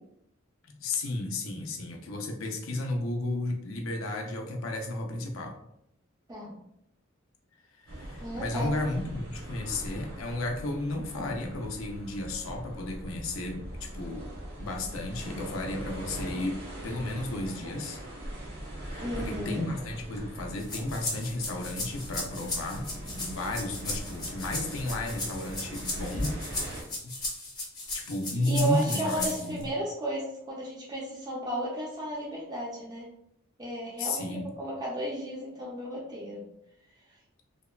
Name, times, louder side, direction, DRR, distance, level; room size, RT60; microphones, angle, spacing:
voice 1, 0.7-5.6 7.8-14.3 14.6-18.0 18.8-26.4 27.0-27.2 27.9-29.7 34.0-34.6, left 2 dB, 75° left, 2 dB, 0.5 m, -33 dB
sound 1, 7.9-26.8, equal, 70° right, 0.8 m, -41 dB
voice 2, 8.2-8.8 19.0-19.6 28.5-33.1 33.6-36.4, right 1 dB, 20° right, -6 dB, 0.5 m, -34 dB
sound 2, 20.6-29.6, left 2 dB, 20° left, 0.7 m, -36 dB
2.8 x 2.1 x 2.3 m, 0.76 s
head